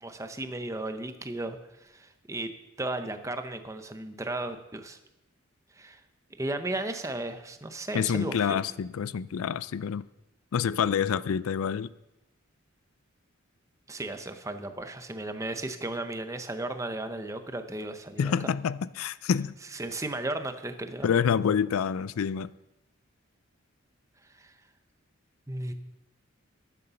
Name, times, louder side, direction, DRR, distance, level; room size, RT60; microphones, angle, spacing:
voice 1, 0.0-2.5 2.8-5.0 5.7-6.0 6.4-8.6 13.9-18.3 19.7-21.1 24.3-24.5 25.5-25.7, right 2 dB, 15° right, 0.7 m, -35 dB
voice 2, 7.9-10.1 10.5-11.9 18.2-19.6 21.0-22.5, left 7 dB, 80° left, 0.4 m, -27 dB
11.0 x 8.3 x 6.9 m
head